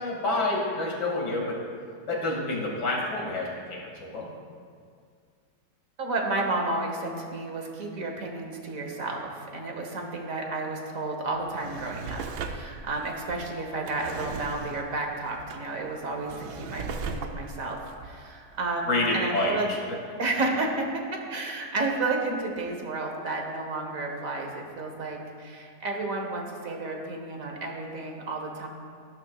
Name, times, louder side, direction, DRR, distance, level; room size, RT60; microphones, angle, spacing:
voice 1, 0.0-1.6 2.1-4.3 18.9-19.8, left 2 dB, 80° left, -1 dB, 2.6 m, -28 dB
voice 2, 6.0-19.7 20.2-28.7, right 2 dB, 55° right, 2 dB, 1.6 m, -32 dB
Drawer open or close, 11.3-19.0 19.5-19.6, right 5 dB, 75° right, 1.2 m, -39 dB
14.0 x 11.5 x 2.4 m, 2.1 s
omnidirectional pair, 1.8 m